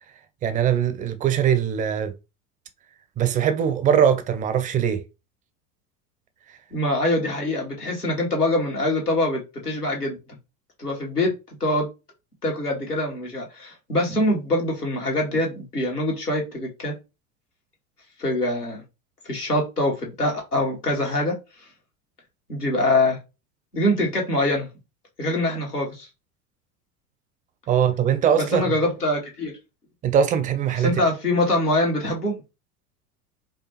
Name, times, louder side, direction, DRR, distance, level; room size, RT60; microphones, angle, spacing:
voice 1, 0.4-2.1 3.2-5.0 27.7-28.7 30.0-31.0, right 8 dB, 20° right, 0.4 m, -21 dB
voice 2, 6.7-10.2 10.8-11.3 11.6-11.9 12.4-16.9 18.2-18.8 19.3-21.3 22.5-23.2 23.7-24.7 25.2-26.1 28.3-29.5 30.7-32.3, left 1 dB, 90° left, 1.4 m, -24 dB
4.7 x 2.2 x 3.1 m
figure-of-eight pair, 80°, 45 cm